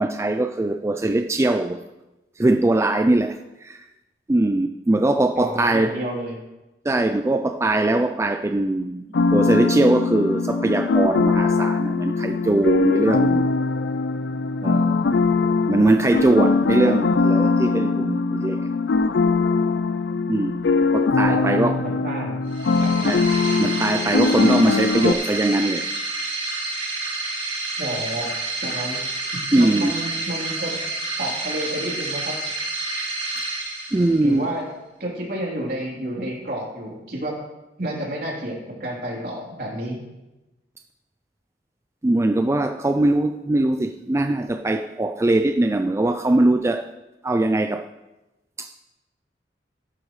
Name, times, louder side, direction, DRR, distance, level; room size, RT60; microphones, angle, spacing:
voice 1, 0.0-1.8 2.4-3.9 4.3-5.9 6.8-9.0 9.3-13.5 14.6-15.2 15.7-18.7 20.3-20.6 20.9-21.8 23.0-23.2 23.6-25.9 29.5-29.9 33.9-34.5 42.0-46.9 47.2-47.9 48.6-48.8, right 2 dB, 15° right, 0.4 m, -21 dB
voice 2, 5.4-6.3 21.3-22.4 22.8-22.9 27.8-28.3 28.6-29.0 29.3-30.8 31.2-32.4 34.2-34.7 35.0-37.4 37.8-40.0, right 1 dB, 55° right, 3.4 m, -30 dB
sound 1, 9.1-25.1, left 4 dB, 75° left, 0.5 m, -21 dB
sound 2, 22.5-34.4, right 2 dB, 40° right, 4.9 m, -29 dB
15.0 x 11.5 x 3.2 m
head